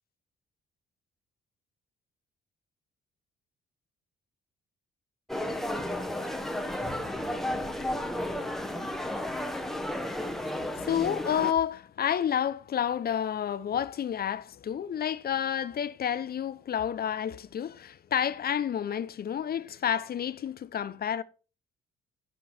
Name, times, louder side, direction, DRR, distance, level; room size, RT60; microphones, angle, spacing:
sound 1, 5.3-11.5, left 1 dB, ahead, 1.2 m, -33 dB
voice 1, 10.4-21.2, left 9 dB, 50° left, 0.7 m, -30 dB
11.5 x 5.3 x 4.3 m
cardioid pair, 90°, 20 cm